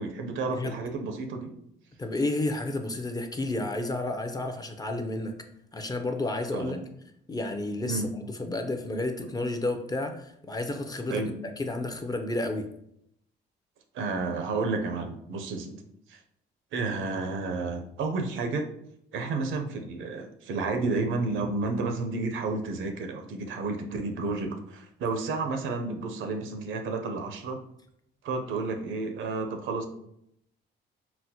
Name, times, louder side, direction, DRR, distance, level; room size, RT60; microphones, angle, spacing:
voice 1, 0.0-1.6 6.5-6.8 7.9-8.1 11.1-11.3 13.9-15.8 16.1-16.2 16.7-18.7 19.1-27.6 28.2-29.9, right 3 dB, 80° right, 5 dB, 0.5 m, -31 dB
voice 2, 2.0-5.4 5.7-6.8 7.3-8.0 8.4-11.2 11.6-12.7, left 2 dB, 20° left, 5 dB, 0.4 m, -31 dB
4.0 x 2.1 x 2.7 m, 0.73 s
cardioid pair, 90°, 20 cm